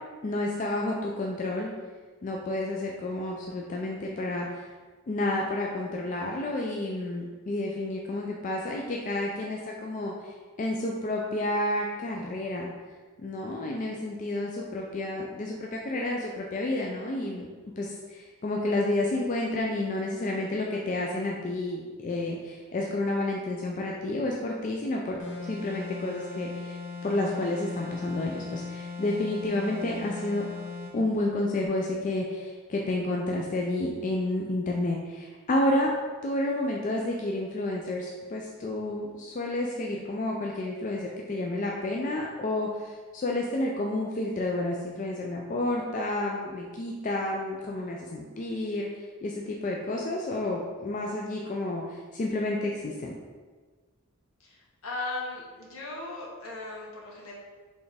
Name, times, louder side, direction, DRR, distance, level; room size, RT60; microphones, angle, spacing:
voice 1, 0.2-1.7 2.2-4.7 5.1-12.7 13.2-17.5 17.8-26.8 27.0-30.4 30.9-35.9 36.2-48.9 49.2-53.1, left 1 dB, 35° left, -1 dB, 0.3 m, -30 dB
sound 1, 25.2-31.0, left 4 dB, 55° left, 0.9 m, -39 dB
voice 2, 54.4-57.3, left 2 dB, 70° left, -3 dB, 1.0 m, -37 dB
4.3 x 3.3 x 3.3 m, 1.4 s
head